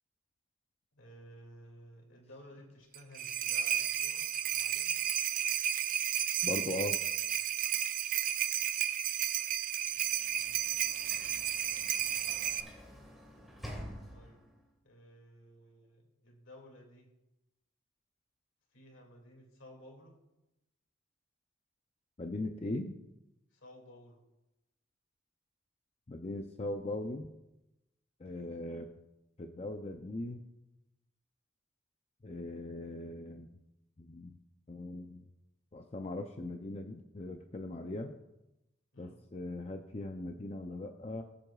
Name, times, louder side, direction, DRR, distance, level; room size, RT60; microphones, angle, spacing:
voice 1, 0.9-5.0 10.4-10.7 14.1-14.4 14.8-17.1 18.7-20.2 23.5-24.2 38.9-39.2, equal, 85° left, 2 dB, 2.4 m, -55 dB
sound 1, 2.9-12.6, right 10 dB, 45° right, 0.4 m, -32 dB
voice 2, 6.4-7.0 22.2-23.0 26.1-27.3 28.2-28.9 29.4-30.4 32.2-33.5 34.0-34.4 34.7-35.2 35.7-38.1 39.0-41.2, left 2 dB, 35° left, 5 dB, 0.5 m, -39 dB
Sliding door / Slam, 9.9-14.7, equal, ahead, 1.8 m, -49 dB
19.5 x 7.8 x 2.4 m, 0.94 s
head